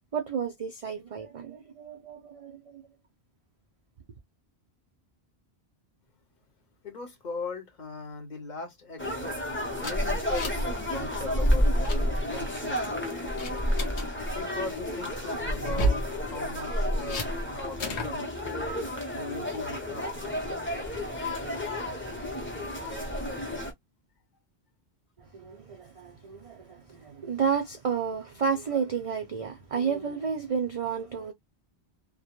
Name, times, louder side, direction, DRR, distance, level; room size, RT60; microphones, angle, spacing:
voice 1, 0.1-2.8 25.2-31.3, right 6 dB, 60° right, 0.3 m, -31 dB
voice 2, 6.8-9.3 9.8-13.1 13.8-14.0 14.3-18.7 19.1-20.1, left 3 dB, 50° left, 0.7 m, -39 dB
sound 1, 9.0-23.7, equal, 15° left, 0.5 m, -30 dB
sound 2, 9.8-10.7 11.0-11.2 11.6-12.0 12.5-12.9 13.4-14.1 15.6-16.1 17.1-17.3 17.8-18.1, right 1 dB, 85° left, 1.0 m, -31 dB
2.2 x 2.1 x 2.9 m
omnidirectional pair, 1.1 m